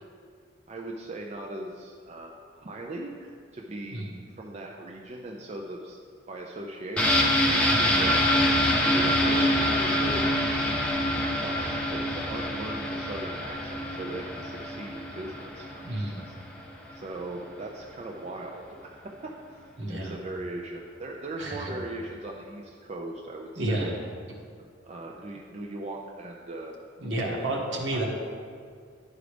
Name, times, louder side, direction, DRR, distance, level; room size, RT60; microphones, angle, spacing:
voice 1, 0.7-6.0 6.3-8.3 8.8-10.8 11.4-16.3 16.9-18.9 19.5-19.6 19.9-24.0 24.8-26.9 27.9-28.0, right 2 dB, 35° right, -1 dB, 0.4 m, -39 dB
sound 1, 7.0-16.6 16.9-17.0, left 1 dB, 5° left, 0.8 m, -25 dB
voice 2, 15.8-16.2 19.8-20.2 21.4-21.7 23.6-24.0 27.0-28.1, right 1 dB, 70° right, -1 dB, 1.3 m, -31 dB
10.5 x 5.0 x 3.3 m, 2.1 s
head